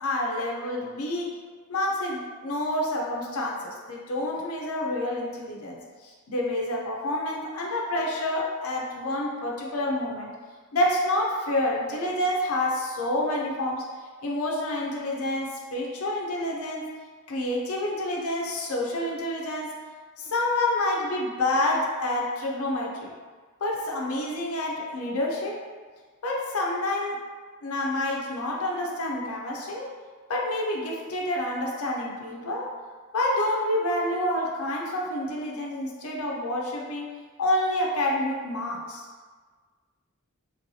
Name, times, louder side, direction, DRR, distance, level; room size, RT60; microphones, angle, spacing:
voice 1, 0.0-1.4 1.7-10.3 10.7-13.8 14.2-16.9 17.3-19.7 20.2-23.1 23.6-25.5 26.2-27.2 27.6-29.9 30.3-32.7 33.1-37.1 37.4-39.1, left 1 dB, 85° left, -2 dB, 0.5 m, -28 dB
3.1 x 3.0 x 2.7 m, 1.5 s
head